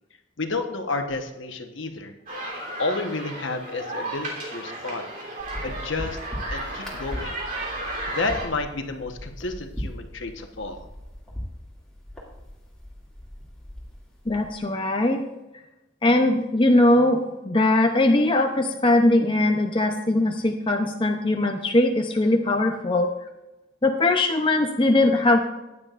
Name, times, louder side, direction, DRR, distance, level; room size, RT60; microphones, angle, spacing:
voice 1, 0.4-2.1 2.8-5.0 5.6-6.2 6.5-7.3 8.1-10.9, left 3 dB, 65° left, 5 dB, 1.1 m, -30 dB
sound 1, 2.3-8.5, right 2 dB, 40° right, 3.1 m, -34 dB
sound 2, 5.4-14.6, equal, 5° left, 2.3 m, -39 dB
voice 2, 14.3-15.2 16.0-23.1 23.8-25.4, left 2 dB, 25° left, 3 dB, 0.6 m, -20 dB
14.5 x 9.6 x 2.5 m, 1.0 s
head